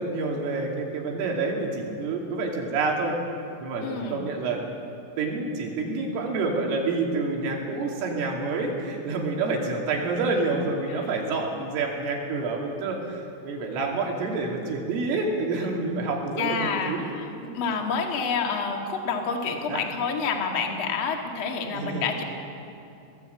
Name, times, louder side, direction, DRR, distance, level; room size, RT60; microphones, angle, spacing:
voice 1, 0.0-3.2 3.6-4.6 5.2-17.1 19.7-19.8 21.7-22.1, right 3 dB, 75° right, 0 dB, 5.2 m, -28 dB
voice 2, 3.8-4.2 10.9-11.1 16.4-22.2, left 5 dB, 85° left, 2 dB, 1.1 m, -28 dB
23.0 x 18.5 x 8.3 m, 2.6 s
omnidirectional pair, 5.9 m